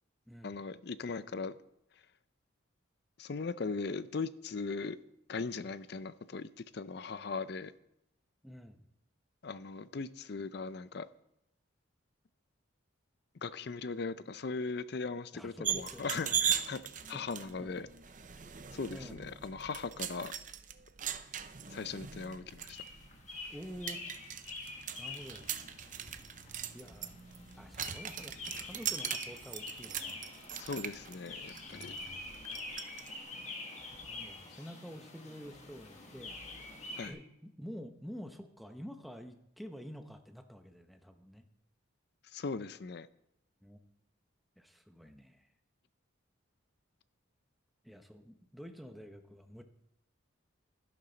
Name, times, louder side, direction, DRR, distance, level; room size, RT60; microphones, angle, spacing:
voice 1, 0.4-1.5 3.2-5.0 5.3-7.7 9.4-11.1 13.4-16.8 17.1-17.9 18.7-20.3 21.7-22.8 30.5-31.9 37.0-37.1 42.3-43.1, left 4 dB, 50° left, 15 dB, 0.5 m, -39 dB
voice 2, 8.4-8.9 15.3-16.1 17.1-17.2 17.6-17.7 18.9-19.2 23.5-24.0 25.0-25.4 26.7-27.1 27.6-30.2 31.7-32.4 34.1-36.4 37.1-41.4 43.6-43.8 44.6-45.5 47.8-49.6, equal, ahead, 6 dB, 0.8 m, -48 dB
sound 1, 15.6-33.1, right 9 dB, 40° right, 0.6 m, -40 dB
sound 2, 22.7-37.1, left 3 dB, 35° left, 1.7 m, -46 dB
12.5 x 11.5 x 4.0 m, 0.81 s
head